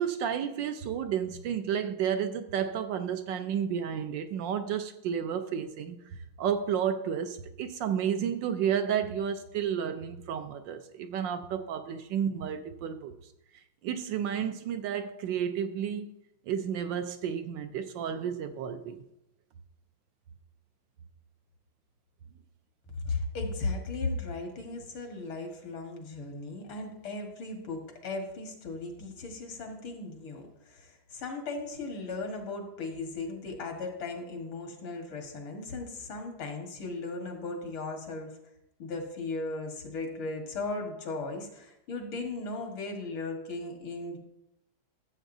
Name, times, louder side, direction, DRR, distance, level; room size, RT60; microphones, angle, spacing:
voice 1, 0.0-6.0 6.4-13.1 13.8-16.1 16.5-19.0, right 8 dB, 70° right, 1.2 m, -31 dB
voice 2, 23.0-38.3 38.8-44.2, left 3 dB, 85° left, 2.3 m, -37 dB
14.0 x 7.6 x 2.7 m
omnidirectional pair, 2.2 m